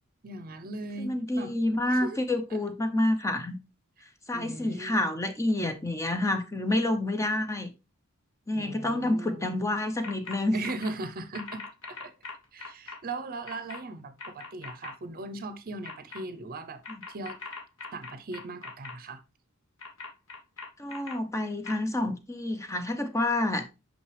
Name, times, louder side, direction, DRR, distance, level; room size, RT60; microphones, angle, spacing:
voice 1, 0.2-1.5 1.9-2.2 4.3-5.0 8.5-9.6 10.5-12.1 12.5-16.8 17.1-17.4 17.9-19.2, right 2 dB, 45° right, 0.7 m, -39 dB
voice 2, 1.0-3.6 4.3-7.7 8.5-10.6 16.9-17.0 20.8-23.6, left 1 dB, 15° left, 0.6 m, -28 dB
sound 1, 10.0-10.4 10.6-10.9 11.3-13.0 13.5-13.8 14.2-14.9 15.8-16.2 16.8-18.9 19.8-21.1 21.6-21.7, left 4 dB, 65° left, 1.7 m, -40 dB
5.7 x 5.5 x 3.3 m
head